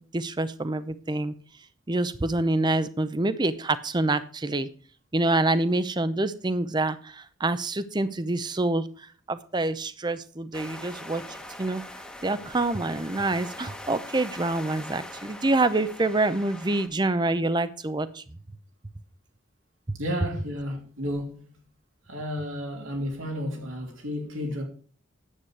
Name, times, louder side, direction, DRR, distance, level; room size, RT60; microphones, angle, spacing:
voice 1, 0.1-1.3 1.9-4.7 5.1-8.9 9.3-11.2 11.6-11.8 12.2-18.2 19.9-20.0, right 2 dB, 20° right, 0.6 m, -26 dB
sound 1, 10.5-16.9, left 1 dB, 5° left, 1.2 m, -42 dB
voice 2, 20.0-21.5 22.1-24.6, equal, 85° right, 3.1 m, -32 dB
10.0 x 8.3 x 4.6 m
head